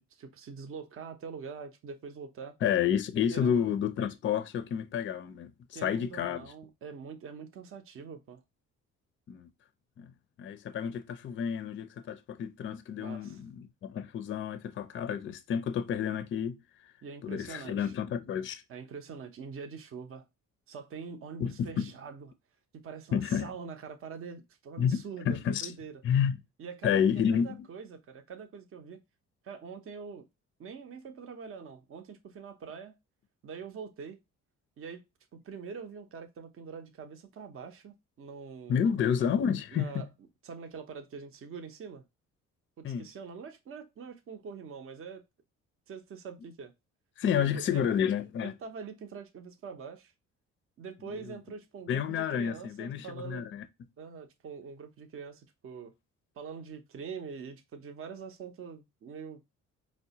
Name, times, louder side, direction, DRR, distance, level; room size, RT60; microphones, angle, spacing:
voice 1, 0.0-2.6 3.3-3.7 5.7-8.4 13.0-13.4 17.0-17.9 18.7-20.2 20.7-22.3 22.8-26.0 26.6-29.0 29.4-30.3 30.6-32.9 33.4-34.2 34.8-35.0 35.3-39.0 39.7-40.1 40.4-42.0 42.8-45.2 45.9-46.7 47.3-47.8 48.4-50.1 50.8-53.5 54.0-55.9 56.4-59.4, right 6 dB, 45° right, 0.6 m, -44 dB
voice 2, 2.6-6.4 9.3-9.5 10.0-10.1 10.4-16.6 17.2-18.6 21.4-21.9 23.1-23.5 24.8-25.7 26.0-26.4 26.8-27.6 38.7-39.9 42.8-43.1 47.2-48.5 51.3-51.4 51.9-53.7, left 8 dB, 40° left, 0.4 m, -30 dB
4.4 x 2.1 x 2.7 m
cardioid pair, 90°, 30 cm